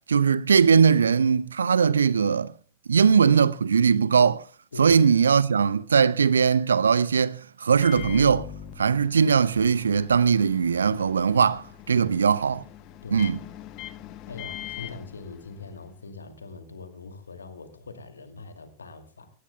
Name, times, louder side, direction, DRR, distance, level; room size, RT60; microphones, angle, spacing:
voice 1, 0.1-2.5 2.9-4.4 4.8-8.5 8.8-12.6 13.1-13.4, right 6 dB, 70° right, 0.6 m, -20 dB
Microwave oven, 7.8-15.9, left 11 dB, 40° left, 1.0 m, -42 dB
voice 2, 14.3-19.3, left 3 dB, 75° left, 2.4 m, -42 dB
22.0 x 18.5 x 2.2 m
figure-of-eight pair, 90°, 0 cm